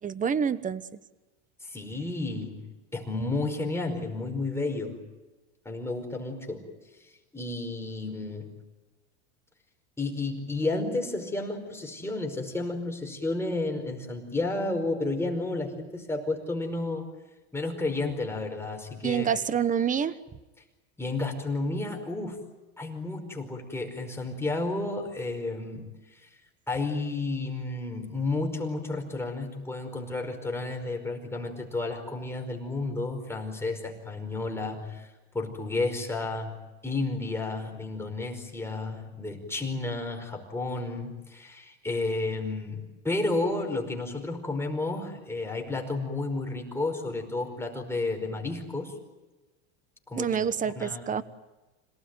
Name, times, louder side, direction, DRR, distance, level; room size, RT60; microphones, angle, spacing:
voice 1, 0.0-0.8 19.0-20.2 50.2-51.2, right 7 dB, 20° right, 15 dB, 1.1 m, -27 dB
voice 2, 1.6-2.6 2.9-5.0 5.6-6.7 7.3-8.5 10.0-17.0 17.5-19.4 21.0-22.4 22.8-25.9 26.1-26.3 26.7-35.1 35.3-48.9 50.1-50.4 50.7-51.0, left 2 dB, 5° left, 2 dB, 5.1 m, -32 dB
27.5 x 18.5 x 9.3 m, 1.1 s
supercardioid pair, 115°, 35 cm